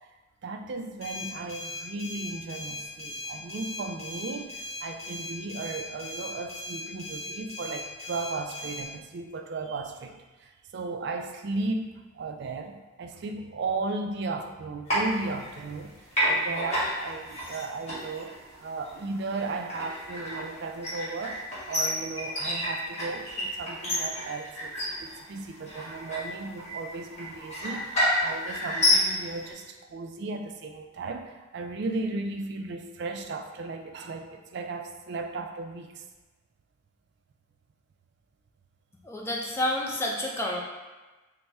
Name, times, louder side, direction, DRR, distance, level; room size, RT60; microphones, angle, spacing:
voice 1, 0.4-16.0 16.3-18.3 18.6-21.4 21.7-36.0, right 3 dB, 55° right, 5 dB, 0.3 m, -35 dB
sound 1, 1.0-8.8, left 1 dB, 80° left, 0.8 m, -38 dB
sound 2, 14.9-15.8 16.1-29.5, left 1 dB, 35° left, 1.3 m, -30 dB
voice 2, 39.0-40.6, left 1 dB, 15° left, -2 dB, 0.4 m, -29 dB
4.1 x 2.1 x 3.4 m, 1.2 s
head